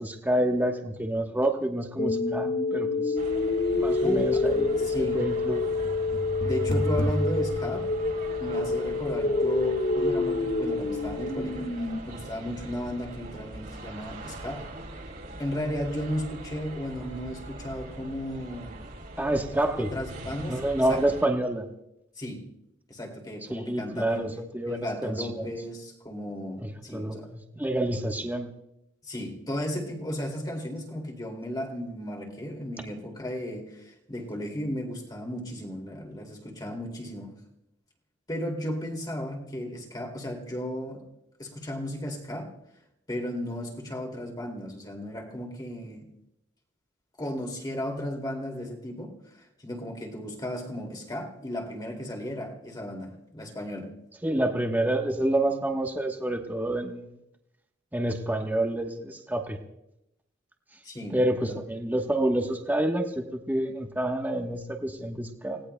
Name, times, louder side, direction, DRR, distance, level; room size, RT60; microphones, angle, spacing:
voice 1, 0.0-3.1 3.7-5.7 19.2-19.9 20.5-21.7 23.5-25.5 26.6-28.5 54.2-57.1 57.9-59.6 61.1-65.6, right 1 dB, 10° right, 3 dB, 1.1 m, -28 dB
sound 1, 2.0-12.0, left 3 dB, 45° left, 1.5 m, -27 dB
sound 2, 3.2-21.3, right 2 dB, 55° right, 3.1 m, -42 dB
voice 2, 4.0-4.4 4.8-5.2 6.4-7.9 8.4-11.7 12.0-14.7 15.4-18.8 19.8-21.0 22.2-22.4 22.9-24.3 24.7-27.3 29.0-37.3 38.3-41.0 41.4-42.5 43.1-46.1 47.2-53.9 60.8-61.2 61.5-61.6, equal, 20° left, 1 dB, 2.5 m, -35 dB
29.5 x 18.0 x 2.2 m, 0.84 s
head